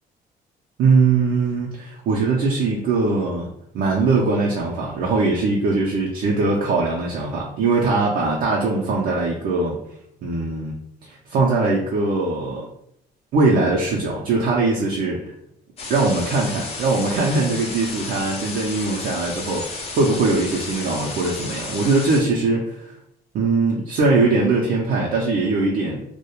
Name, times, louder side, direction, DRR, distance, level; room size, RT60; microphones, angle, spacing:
voice 1, 0.8-3.5 3.7-9.8 10.2-10.7 11.0-12.7 13.3-15.3 15.9-22.9 23.3-26.0, right 3 dB, 60° right, -3 dB, 0.5 m, -21 dB
sound 1, 15.8-22.2, left 3 dB, 35° left, 0.5 m, -32 dB
2.3 x 2.1 x 2.9 m, 0.74 s
cardioid pair, 110°, 17 cm